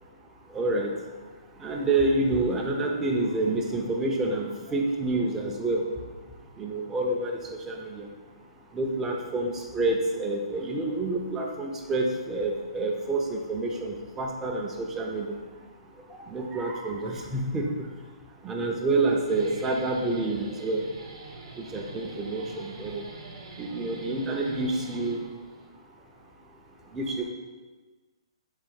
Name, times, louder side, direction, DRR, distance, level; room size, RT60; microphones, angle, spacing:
voice 1, 0.5-0.9 1.6-5.8 6.6-7.4 7.7-8.0 8.7-15.3 16.3-17.7 18.4-20.8 21.6-23.0 23.6-25.2 26.9-27.3, right 2 dB, 10° right, 0 dB, 0.3 m, -28 dB
Guitar, 19.0-25.7, right 2 dB, 60° right, 0.7 m, -44 dB
3.7 x 2.4 x 4.3 m, 1.3 s
hypercardioid pair, 160°, 3 cm